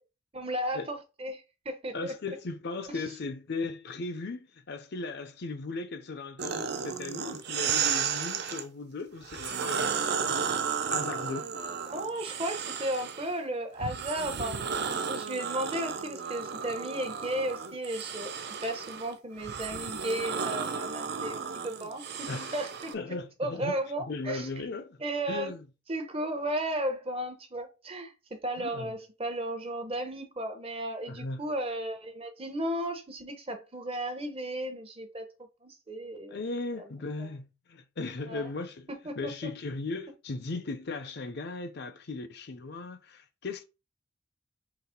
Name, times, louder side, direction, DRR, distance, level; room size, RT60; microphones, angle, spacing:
voice 1, 0.3-2.1 2.9-3.0 11.9-14.5 15.1-18.3 18.6-21.4 21.6-22.9 23.4-24.5 25.0-25.5 25.9-36.4 36.8-36.9 37.2-37.3 38.3-38.5 38.9-39.3, right 1 dB, 30° right, 0.8 m, -34 dB
voice 2, 1.9-9.9 10.2-11.5 22.3-22.6 22.9-23.8 24.1-25.0 25.3-25.7 28.6-28.9 31.1-31.4 36.3-38.9 39.2-43.6, left 3 dB, 50° left, 0.6 m, -37 dB
sound 1, 6.4-8.6 9.2-13.3 13.8-22.9, right 6 dB, 50° right, 0.5 m, -33 dB
4.0 x 3.0 x 4.3 m
head